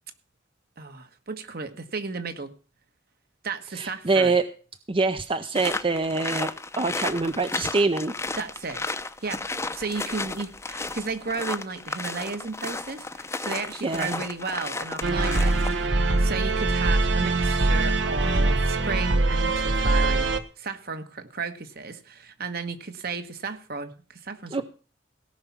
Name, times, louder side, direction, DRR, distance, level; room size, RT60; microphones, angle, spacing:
voice 1, 0.8-2.5 3.4-4.4 8.4-9.0 9.2-9.4 9.7-20.3 20.6-24.6, right 4 dB, 55° right, 8 dB, 1.5 m, -34 dB
voice 2, 3.7-4.4 4.9-6.5 6.8-8.1 13.8-14.2 24.5-24.6, right 3 dB, 30° right, 10 dB, 0.6 m, -24 dB
sound 1, 5.6-15.9, left 3 dB, 15° left, 0.7 m, -33 dB
sound 2, 15.0-20.4, right 2 dB, 70° right, 1.1 m, -23 dB
17.5 x 5.8 x 7.3 m, 0.37 s
head